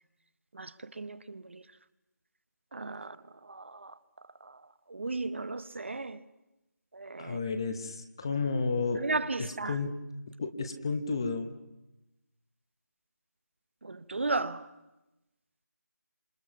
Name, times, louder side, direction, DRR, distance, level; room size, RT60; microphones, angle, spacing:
voice 1, 0.5-1.6 2.7-3.2 3.4-3.9 4.4-4.6 4.9-6.2 6.9-7.4 9.0-9.8 13.8-14.7, right 3 dB, 40° right, 0.9 m, -35 dB
voice 2, 7.2-9.0 9.4-10.0 10.4-11.5, left 4 dB, 15° left, 0.8 m, -32 dB
28.5 x 27.0 x 5.8 m
figure-of-eight pair, 175°, 10 cm